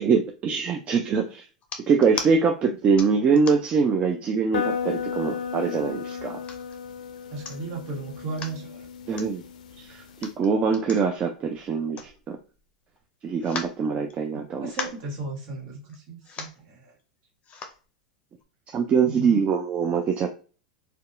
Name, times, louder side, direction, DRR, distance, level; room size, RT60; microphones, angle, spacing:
voice 1, 0.0-1.5 1.9-6.4 9.1-9.4 9.8-12.4 13.2-14.7 18.7-20.3, right 5 dB, 30° right, 3 dB, 0.4 m, -23 dB
sound 1, 1.6-2.3 3.0-3.8 4.4-4.5 4.8-5.5 6.1-6.8 7.2-7.3 7.4-7.8 8.2-8.6 9.1-9.3 10.1-12.6 12.9-13.0 13.4-14.4 14.6-15.1 15.9-16.0 16.2-16.6 17.4-17.8 18.4-18.5, left 5 dB, 30° left, 0.6 m, -37 dB
sound 2, 4.5-10.3, left 7 dB, 75° left, 0.4 m, -34 dB
voice 2, 7.3-8.9 14.6-16.9 19.1-19.4, right 3 dB, 50° right, -1 dB, 1.3 m, -35 dB
2.7 x 2.2 x 2.4 m, 0.36 s
hypercardioid pair, 100°, 4 cm